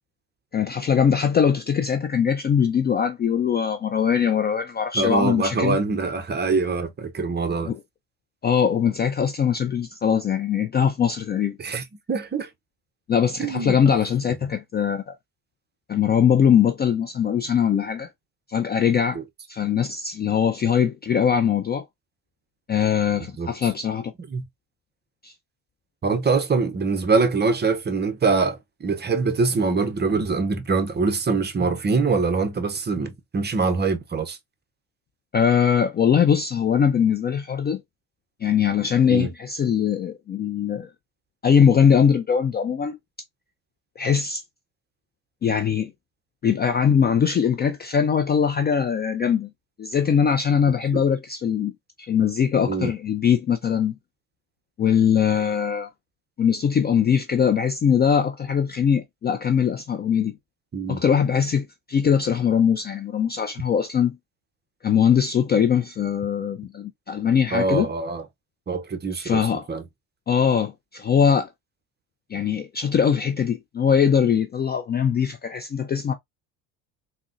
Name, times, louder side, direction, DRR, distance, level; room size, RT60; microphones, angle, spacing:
voice 1, 0.5-5.8 7.6-7.8 8.4-11.6 13.1-15.1 15.9-18.1 18.5-19.2 19.5-21.8 22.7-24.1 25.2-25.3 35.3-37.8 38.4-40.9 41.4-43.0 44.0-44.4 45.4-45.9 46.4-49.5 49.8-51.7 52.1-54.0 54.8-55.9 56.4-60.4 60.9-64.2 64.8-67.9 69.1-69.6 70.3-71.5 72.3-76.1, left 7 dB, 25° left, 0.4 m, -21 dB
voice 2, 4.9-7.7 11.6-12.5 13.4-14.0 19.1-19.2 23.4-23.5 24.3-24.4 26.0-34.4 39.1-39.3 50.9-51.0 52.7-52.9 60.7-61.0 67.5-68.2 68.7-69.8, right 4 dB, 25° right, 0.7 m, -24 dB
3.5 x 2.2 x 2.5 m
hypercardioid pair, 65°, 45 cm